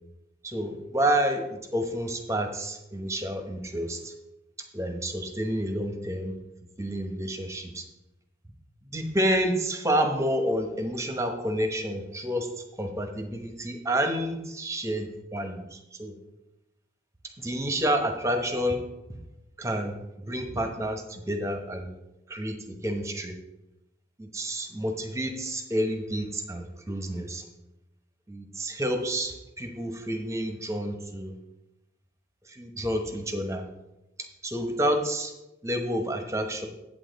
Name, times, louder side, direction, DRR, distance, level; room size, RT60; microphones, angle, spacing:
voice 1, 0.4-4.1 4.7-6.3 6.8-7.8 8.9-12.5 12.8-16.1 17.4-18.8 19.6-21.9 22.3-22.6 22.8-23.3 24.2-27.4 28.3-31.4 32.4-33.7 34.4-35.3 35.6-36.7, right 1 dB, 15° right, 5 dB, 0.9 m, -29 dB
8.6 x 8.4 x 3.9 m, 0.98 s
head